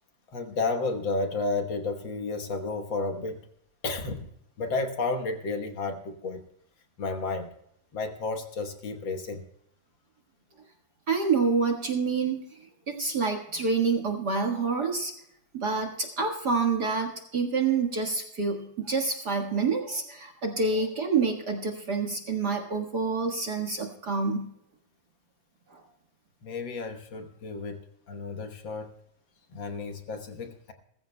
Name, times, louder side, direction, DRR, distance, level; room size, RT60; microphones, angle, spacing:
voice 1, 0.3-3.4 3.8-4.3 4.6-6.4 7.0-7.5 7.9-9.5 26.4-27.8 28.1-28.9 29.5-30.7, left 3 dB, 55° left, 5 dB, 1.4 m, -32 dB
voice 2, 11.1-12.6 12.9-15.1 15.5-24.5 25.7-25.8, right 4 dB, 45° right, 3 dB, 1.5 m, -27 dB
20.5 x 15.0 x 2.2 m, 0.73 s
omnidirectional pair, 3.6 m